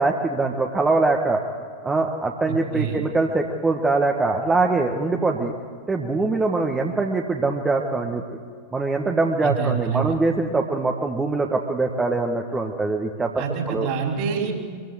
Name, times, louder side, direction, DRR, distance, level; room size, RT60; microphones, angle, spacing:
voice 1, 0.0-1.4 1.8-5.5 5.9-8.2 8.7-13.3 13.7-13.9, right 3 dB, 15° right, 1 dB, 1.6 m, -23 dB
voice 2, 2.5-3.0 9.4-10.2 13.4-14.5, right 6 dB, 45° right, 1 dB, 5.0 m, -26 dB
24.0 x 16.0 x 8.1 m, 2.1 s
figure-of-eight pair, 90°, 0 cm